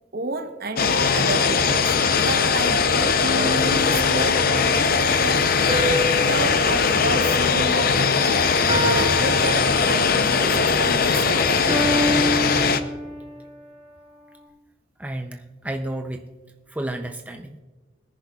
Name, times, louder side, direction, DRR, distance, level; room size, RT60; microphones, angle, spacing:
voice 1, 0.1-5.5 6.2-8.5 8.8-11.7, right 3 dB, 50° right, 0.9 m, -31 dB
sound 1, 0.8-12.8, left 5 dB, 50° left, 0.6 m, -20 dB
sound 2, 3.2-4.7 5.7-8.2 8.7-10.3 11.7-13.4, equal, 30° right, 3.0 m, -28 dB
voice 2, 15.0-16.3 16.7-17.6, right 1 dB, 10° right, 0.5 m, -31 dB
21.0 x 10.5 x 2.4 m
head